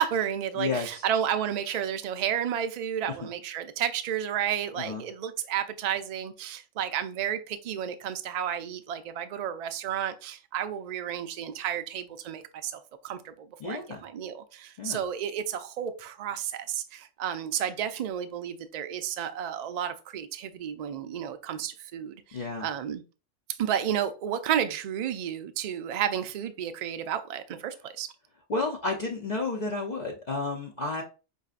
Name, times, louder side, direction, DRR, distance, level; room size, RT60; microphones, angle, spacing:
voice 1, 0.0-22.2 22.6-23.0 23.6-28.1, right 9 dB, 75° right, 0.3 m, -31 dB
voice 2, 0.5-1.1 3.1-3.2 4.8-5.0 13.6-14.0 14.8-15.0 22.3-22.7 28.5-31.0, left 3 dB, 50° left, 0.6 m, -31 dB
5.5 x 2.6 x 2.4 m
omnidirectional pair, 1.2 m